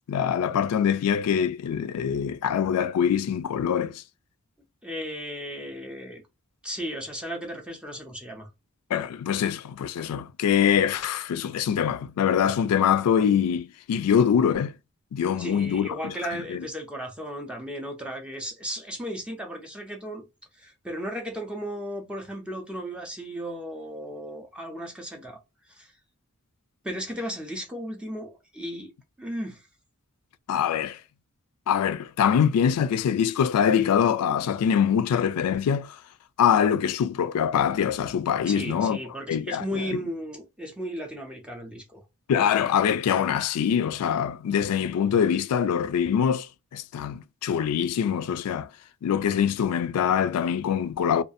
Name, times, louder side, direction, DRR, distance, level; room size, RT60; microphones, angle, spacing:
voice 1, 0.1-4.0 8.9-14.7 15.1-16.1 16.5-16.6 30.5-31.0 31.7-36.0 36.4-39.0 39.3-40.0 42.3-46.5 46.7-48.7 49.0-51.2, left 8 dB, 85° left, 0.3 m, -24 dB
voice 2, 4.8-6.2 6.6-8.5 15.4-20.2 20.6-25.4 25.7-25.9 26.8-28.9 29.2-29.7 38.5-42.0, equal, 5° right, 0.4 m, -35 dB
2.5 x 2.3 x 2.5 m
head